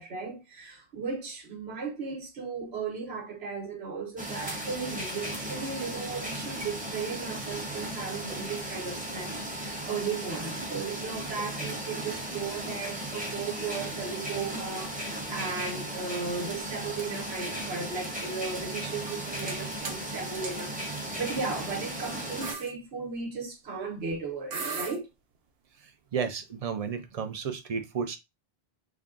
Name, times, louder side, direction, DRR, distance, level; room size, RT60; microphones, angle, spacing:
voice 1, 0.0-25.1, right 4 dB, 90° right, 1.3 m, -36 dB
sound 1, 4.2-22.5, right 1 dB, 10° right, 0.8 m, -36 dB
sound 2, 19.1-19.6 19.8-20.0 20.4-20.5 21.4-21.6 22.0-22.1 22.4-22.7 24.1-24.2 24.5-25.0, right 5 dB, 75° right, 1.0 m, -36 dB
voice 2, 26.1-28.2, right 6 dB, 45° right, 0.5 m, -32 dB
3.6 x 2.2 x 3.7 m
omnidirectional pair, 1.0 m